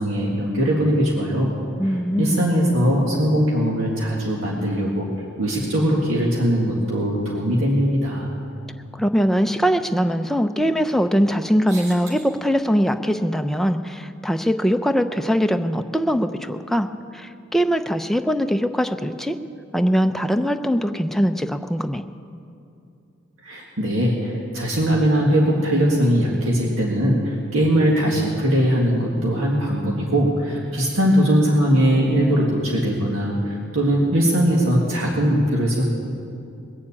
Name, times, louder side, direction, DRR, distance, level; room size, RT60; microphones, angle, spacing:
voice 1, 0.0-1.5 2.2-5.1 5.4-8.3 11.7-11.8 23.4-35.8, equal, 85° right, -3 dB, 1.9 m, -20 dB
voice 2, 1.8-2.5 8.9-19.4 19.7-22.0, equal, ahead, 7 dB, 0.5 m, -21 dB
21.0 x 7.2 x 8.6 m, 2.7 s
head